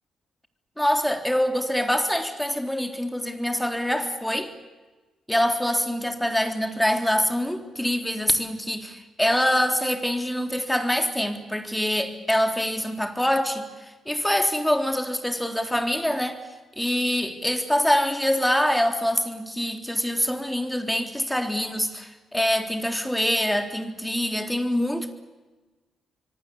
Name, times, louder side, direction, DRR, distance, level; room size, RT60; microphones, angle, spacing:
voice 1, 0.8-4.5 5.3-16.4 16.8-25.1, equal, 5° left, 3.7 m, -25 dB
25.0 x 24.0 x 8.3 m
hypercardioid pair, 40°, 0 cm